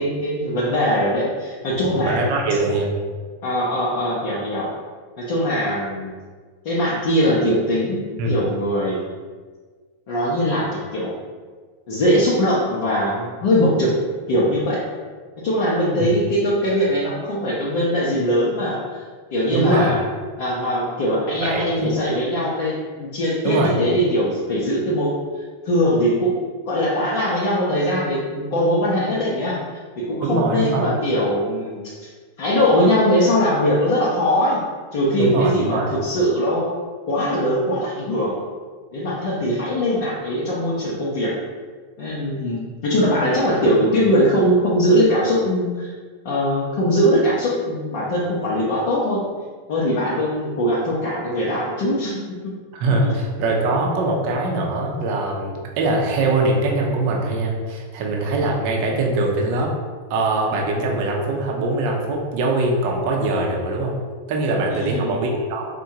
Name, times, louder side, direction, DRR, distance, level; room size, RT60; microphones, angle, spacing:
voice 1, 0.0-2.3 3.4-4.7 5.2-6.1 6.6-9.1 10.1-11.2 11.9-14.0 14.3-14.8 15.4-19.0 19.3-20.0 20.4-29.6 30.0-32.1 32.4-34.6 34.9-36.7 37.1-38.4 38.9-41.3 42.0-45.9 46.2-49.2 49.7-52.5 64.7-65.1, equal, 50° left, -7 dB, 0.6 m, -21 dB
voice 2, 2.0-2.9 8.2-8.3 16.0-16.1 19.5-19.9 21.4-21.9 23.4-23.8 30.2-30.9 35.2-35.9 52.8-59.7 60.1-63.9 64.3-65.6, right 2 dB, 45° right, -1 dB, 0.6 m, -22 dB
4.4 x 2.2 x 2.7 m, 1.5 s
figure-of-eight pair, 90°, 0 cm